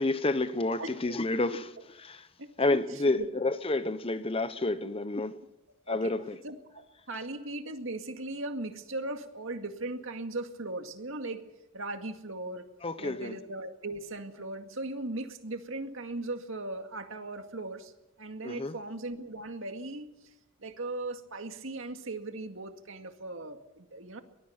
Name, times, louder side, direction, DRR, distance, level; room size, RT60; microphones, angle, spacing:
voice 1, 0.0-1.6 2.0-2.2 2.6-5.4 5.9-6.4 12.8-13.4 18.4-18.7, left 2 dB, 25° left, 0.9 m, -29 dB
voice 2, 0.8-1.2 1.5-1.6 2.4-3.3 5.9-6.1 6.4-11.4 11.7-12.6 13.0-17.9 18.2-20.1 20.6-24.2, right 2 dB, 65° right, 2.1 m, -38 dB
23.0 x 19.5 x 5.9 m
head